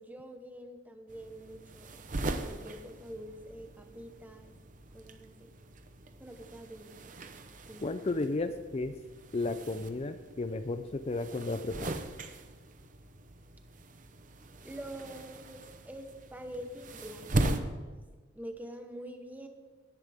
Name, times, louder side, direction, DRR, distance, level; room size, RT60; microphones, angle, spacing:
voice 1, 0.0-1.9 2.2-4.5 4.9-5.5 6.2-7.2 7.7-7.9 14.6-17.8 18.3-19.5, equal, 10° right, 5 dB, 1.1 m, -46 dB
sound 1, 1.1-17.6, right 2 dB, 45° right, 0.8 m, -40 dB
voice 2, 7.8-8.9 9.3-12.0, left 2 dB, 35° left, 9 dB, 0.5 m, -33 dB
18.0 x 10.5 x 3.6 m, 1.3 s
head